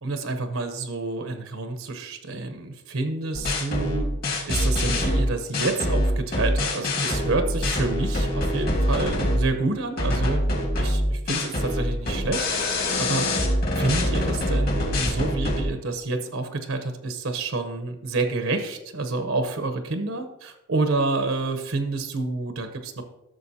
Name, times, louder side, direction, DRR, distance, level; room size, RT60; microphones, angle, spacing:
voice 1, 0.0-4.0 4.5-10.4 10.8-12.5 13.0-13.3 13.8-23.0, right 3 dB, 75° right, 7 dB, 0.9 m, -28 dB
sound 1, 3.3-9.5 10.0-15.6, left 1 dB, 45° left, 1.8 m, -24 dB
12.5 x 6.7 x 2.8 m, 0.88 s
head